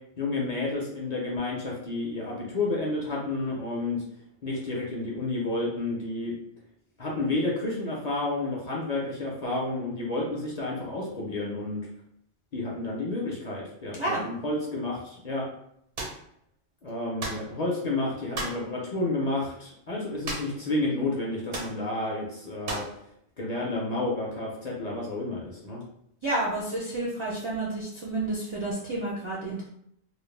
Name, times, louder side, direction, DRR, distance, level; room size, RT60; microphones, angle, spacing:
voice 1, 0.2-4.0 4.4-6.3 7.0-11.9 12.5-15.4 16.8-22.8 23.4-25.8, left 2 dB, 50° left, -4 dB, 0.5 m, -30 dB
sound 1, 16.0-16.2 17.2-17.5 18.3-18.6 20.2-20.7 20.9-21.0 21.5-21.8 22.7-23.0, right 2 dB, 90° right, 1.0 m, -34 dB
voice 2, 26.2-29.7, right 2 dB, 45° right, -6 dB, 0.4 m, -30 dB
2.3 x 2.0 x 3.1 m, 0.72 s
omnidirectional pair, 1.1 m